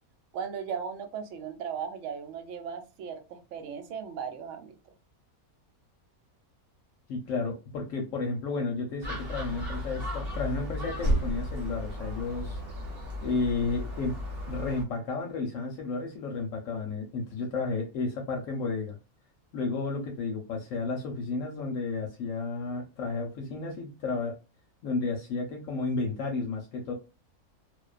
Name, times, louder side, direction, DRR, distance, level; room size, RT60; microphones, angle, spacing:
voice 1, 0.3-4.7, right 7 dB, 70° right, 0.9 m, -37 dB
voice 2, 7.1-12.6 13.2-14.2 14.5-19.0 19.5-24.3 24.8-26.9, left 3 dB, 70° left, 0.9 m, -32 dB
Gull seagull, 9.0-14.8, equal, 50° right, 1.0 m, -33 dB
2.4 x 2.2 x 2.3 m
omnidirectional pair, 1.5 m